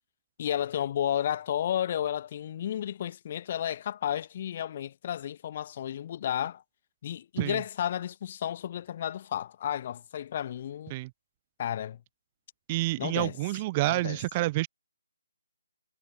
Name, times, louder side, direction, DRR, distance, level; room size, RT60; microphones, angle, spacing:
voice 1, 0.4-6.6 7.0-10.9 11.6-12.0 13.0-13.4 13.9-14.2, left 10 dB, 40° left, 2.1 m, -32 dB
voice 2, 12.7-14.7, right 19 dB, 25° right, 1.2 m, -28 dB
figure-of-eight pair, 150°, 0 cm